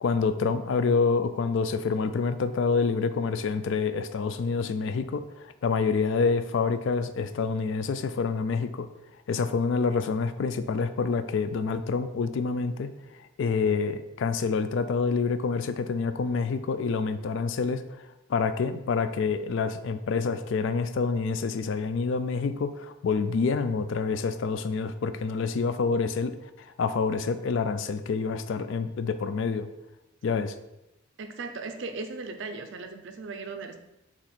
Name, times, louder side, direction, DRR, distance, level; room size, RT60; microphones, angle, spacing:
voice 1, 0.0-8.9 9.3-12.9 13.4-17.8 18.3-26.3 26.8-29.7 30.2-30.5, left 5 dB, 60° left, 10 dB, 0.3 m, -27 dB
voice 2, 31.2-33.8, right 3 dB, 55° right, 7 dB, 0.4 m, -37 dB
4.4 x 2.9 x 4.0 m, 0.91 s
head